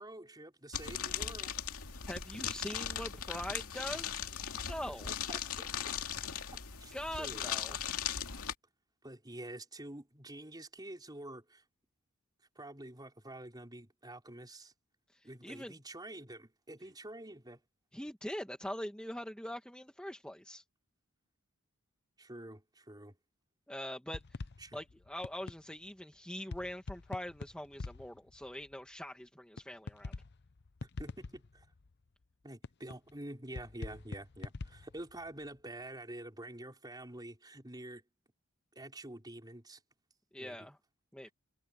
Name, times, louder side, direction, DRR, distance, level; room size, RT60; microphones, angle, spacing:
voice 1, 0.0-1.6 5.3-5.9 6.5-7.4 9.0-11.6 12.5-14.7 15.2-17.6 22.2-23.2 24.6-24.8 31.0-31.7 32.4-38.0 38.7-39.8 40.4-40.7 41.2-41.3, right 1 dB, 20° right, 4.7 m, -48 dB
sound 1, 0.7-8.5, left 8 dB, 80° left, 2.6 m, -38 dB
voice 2, 2.0-4.2 4.5-5.1 6.9-7.8 15.1-15.8 17.9-20.6 23.7-24.4 24.7-30.1 40.3-40.8 41.1-41.3, left 1 dB, 5° left, 1.8 m, -43 dB
sound 2, 24.1-25.7 26.5-28.7 29.6-29.7 29.9-31.9 32.6-33.1 33.6-35.5, left 3 dB, 50° left, 0.7 m, -44 dB
head